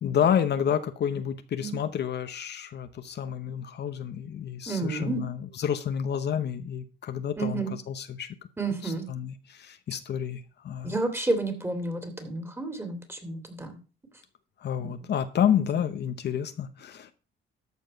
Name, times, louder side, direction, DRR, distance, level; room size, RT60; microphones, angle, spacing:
voice 1, 0.0-8.3 8.8-11.0 14.6-17.1, left 9 dB, 60° left, 0.9 m, -29 dB
voice 2, 4.7-5.2 7.4-7.7 8.6-9.1 10.8-13.7 15.4-15.5, right 3 dB, 10° right, 2.6 m, -30 dB
13.5 x 4.7 x 5.2 m
cardioid pair, 90°, 20 cm